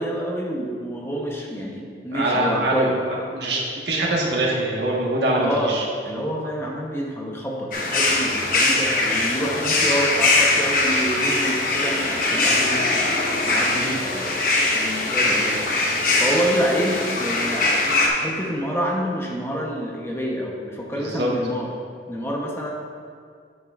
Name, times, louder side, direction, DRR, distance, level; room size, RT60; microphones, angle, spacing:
voice 1, 0.0-3.0 5.4-12.8 13.4-14.3 14.7-15.7 16.2-17.8 18.2-21.7 22.1-22.7, equal, 15° left, -1 dB, 0.8 m, -27 dB
voice 2, 2.1-5.8 20.9-21.3, right 1 dB, 75° right, -3 dB, 1.4 m, -23 dB
sound 1, 7.7-18.1, left 2 dB, 50° left, 1.0 m, -21 dB
9.1 x 7.7 x 2.4 m, 2.2 s
head